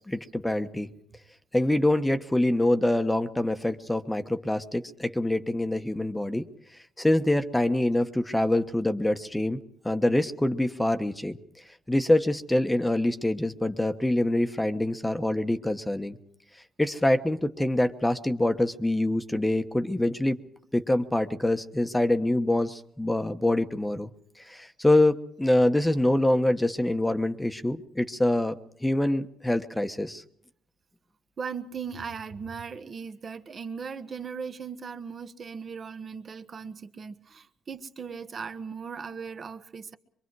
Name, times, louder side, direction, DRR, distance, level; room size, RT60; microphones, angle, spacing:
voice 1, 0.1-0.9 1.5-6.5 7.0-11.4 11.9-16.2 16.8-20.4 20.7-24.1 24.4-30.2, left 1 dB, 10° left, 8 dB, 1.1 m, -25 dB
voice 2, 31.4-39.9, right 6 dB, 45° right, 9 dB, 1.4 m, -38 dB
24.0 x 23.0 x 4.8 m, 0.66 s
cardioid pair, 90°, 0 cm